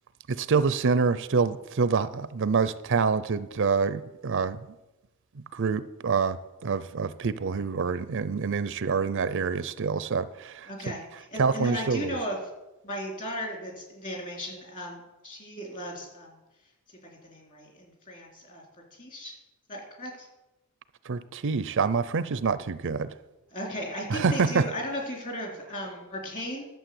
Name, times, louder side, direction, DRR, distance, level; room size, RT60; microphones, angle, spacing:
voice 1, 0.3-4.6 5.5-10.7 11.4-12.2 21.1-23.1 24.1-24.7, right 5 dB, 55° right, 15 dB, 0.5 m, -26 dB
voice 2, 10.6-12.4 12.8-16.4 16.9-17.0 17.2-18.6 19.0-19.4 19.7-20.3 23.5-26.7, equal, 35° left, 0 dB, 3.6 m, -36 dB
11.5 x 7.3 x 7.8 m, 1.0 s
head